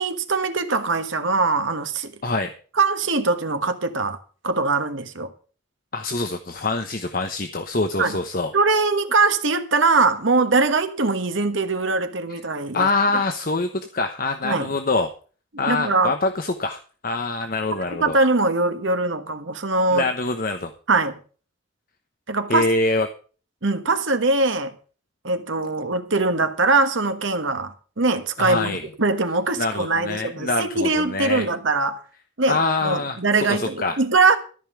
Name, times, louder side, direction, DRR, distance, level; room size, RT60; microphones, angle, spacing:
voice 1, 0.0-2.1 2.8-4.2 4.4-5.3 8.0-8.2 8.5-12.9 14.4-14.7 15.6-16.1 18.0-20.1 20.9-21.2 22.3-22.7 23.6-24.7 25.2-32.0 32.4-34.4, right 3 dB, 75° right, 1.4 m, -22 dB
voice 2, 5.9-8.5 12.7-15.1 15.6-18.2 19.9-20.7 22.5-23.1 28.4-28.9 29.6-31.4 32.5-33.2 33.5-34.0, left 3 dB, 45° left, 1.0 m, -24 dB
14.0 x 5.5 x 8.3 m
head